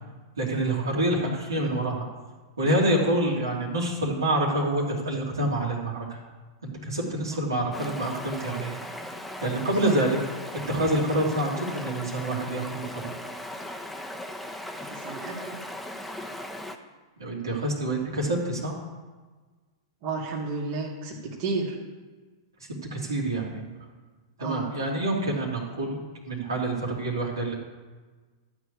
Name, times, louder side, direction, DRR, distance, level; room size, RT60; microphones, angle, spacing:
voice 1, 0.4-2.1 2.6-6.2 6.6-8.7 9.4-10.2 10.7-13.1 17.2-18.7 22.9-23.7 24.4-27.5, right 1 dB, 85° right, -3 dB, 2.9 m, -27 dB
Stream, 7.7-16.8, left 1 dB, ahead, 0.9 m, -38 dB
voice 2, 14.9-15.6 20.0-21.8 24.4-24.7, right 3 dB, 50° right, -2 dB, 2.2 m, -32 dB
12.5 x 4.8 x 8.4 m, 1.4 s
hypercardioid pair, 110°, 2 cm